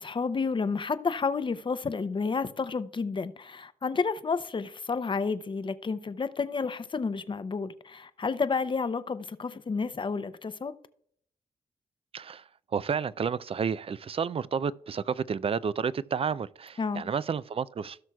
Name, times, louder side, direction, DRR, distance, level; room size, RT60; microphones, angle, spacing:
voice 1, 0.0-10.7 16.8-17.0, left 4 dB, 35° left, 0.6 m, -30 dB
voice 2, 12.1-18.0, right 6 dB, 40° right, 0.4 m, -31 dB
17.0 x 6.1 x 2.3 m
cardioid pair, 75°, 14 cm